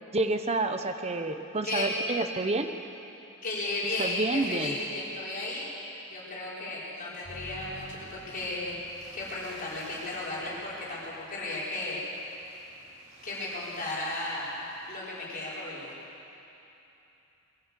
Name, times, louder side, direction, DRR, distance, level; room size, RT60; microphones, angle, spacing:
voice 1, 0.1-2.7 4.0-4.8, right 2 dB, 30° right, 7 dB, 0.9 m, -29 dB
voice 2, 3.4-5.7 6.1-8.8 9.1-12.0 13.2-14.6 14.9-15.9, left 2 dB, 40° left, -7 dB, 5.4 m, -34 dB
sound 1, 7.2-15.0, right 1 dB, 65° right, 5.7 m, -51 dB
22.0 x 14.0 x 8.4 m, 2.9 s
head